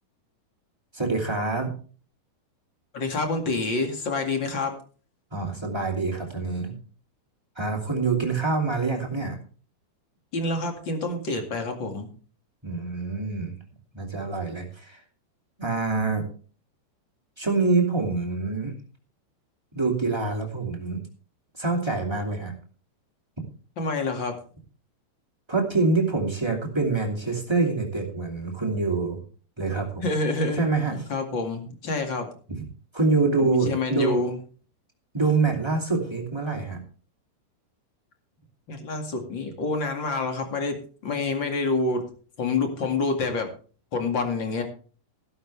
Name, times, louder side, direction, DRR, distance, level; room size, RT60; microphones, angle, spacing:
voice 1, 0.9-1.7 5.3-6.7 7.5-9.4 12.6-13.6 13.9-15.0 15.6-16.2 17.4-18.7 19.7-21.0 21.6-22.5 25.5-29.2 29.6-30.0 30.5-31.1 32.5-32.6 32.9-34.2 35.1-36.8, right 3 dB, 25° right, -1 dB, 0.5 m, -25 dB
voice 2, 2.9-4.7 10.3-12.1 23.8-24.3 30.0-30.6 31.1-32.3 33.4-34.3 38.7-40.8 41.0-42.0 42.4-43.5 43.9-44.6, left 3 dB, 45° left, 4 dB, 1.5 m, -27 dB
15.0 x 12.5 x 3.3 m, 0.39 s
omnidirectional pair, 5.5 m